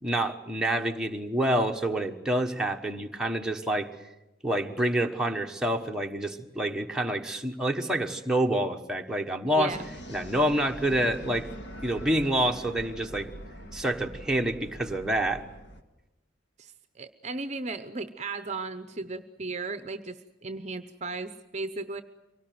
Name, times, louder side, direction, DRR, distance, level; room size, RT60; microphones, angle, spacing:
voice 1, 0.0-3.9 4.4-9.7 10.1-11.5 11.8-13.3 13.7-15.4, right 1 dB, 5° right, 2 dB, 1.3 m, -27 dB
voice 2, 9.5-9.9 16.6-16.7 17.0-22.0, right 3 dB, 35° right, 11 dB, 0.8 m, -35 dB
sound 1, 9.7-15.8, equal, 60° left, 2.0 m, -43 dB
24.0 x 18.5 x 9.3 m, 1.0 s
head